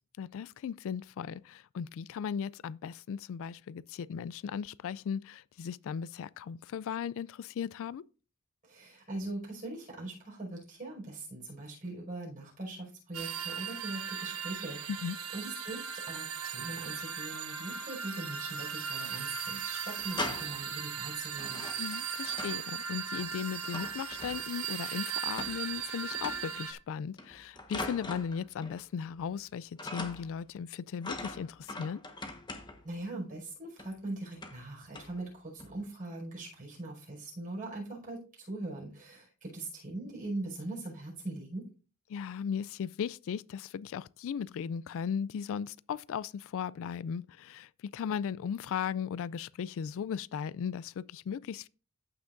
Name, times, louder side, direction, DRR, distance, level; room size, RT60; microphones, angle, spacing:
voice 1, 0.2-8.0 14.9-15.2 21.8-32.0 42.1-51.7, left 7 dB, 65° left, 0.3 m, -37 dB
voice 2, 8.6-21.7 32.8-41.7, right 2 dB, 40° right, 5.3 m, -41 dB
sound 1, 13.1-26.7, right 7 dB, 85° right, 1.1 m, -38 dB
sound 2, 18.4-19.1 19.4-19.5 19.8-20.7 21.4-22.7 23.0-24.7 25.4-25.8 26.1-26.6 27.2-28.8 29.1-29.5 29.8-30.4 31.0-32.9 33.8-33.9 34.3-34.7 34.9-35.2 35.6-35.8, left 2 dB, 20° left, 1.2 m, -42 dB
14.5 x 6.0 x 2.6 m
head